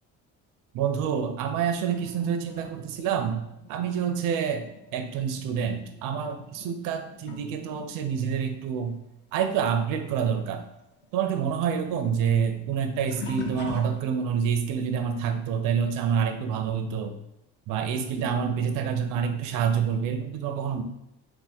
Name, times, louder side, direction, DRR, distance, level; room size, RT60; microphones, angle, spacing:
voice 1, 0.7-3.4 3.7-4.7 4.9-8.9 9.3-10.6 11.1-17.1 17.7-20.8, right 7 dB, 65° right, 6 dB, 0.6 m, -27 dB
sound 1, 1.9-9.9 10.1-14.5 15.1-15.4 17.7-17.8 18.6-18.7, left 6 dB, 30° left, 0.5 m, -45 dB
3.5 x 2.2 x 4.3 m, 0.84 s
cardioid pair, 130°, 35 cm